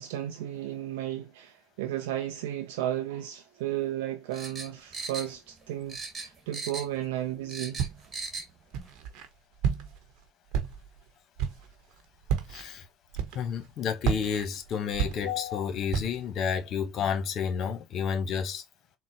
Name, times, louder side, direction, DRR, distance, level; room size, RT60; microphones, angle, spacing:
voice 1, 0.0-7.8, right 12 dB, 85° right, 0.5 m, -34 dB
sound 1, 4.3-5.6 5.9-7.0 7.3-8.5 8.8-8.9, right 3 dB, 30° right, 1.2 m, -38 dB
Walk footsteps, 7.8-8.2 8.7-9.3 9.6-10.1 10.5-11.0 11.4-11.7 12.2-12.6 13.1-13.7 14.0-15.6 15.9-16.3, right 7 dB, 70° right, 0.9 m, -31 dB
voice 2, 12.5-12.8 13.3-18.6, left 7 dB, 55° left, 0.9 m, -30 dB
4.0 x 2.2 x 2.7 m
supercardioid pair, 85°, 0 cm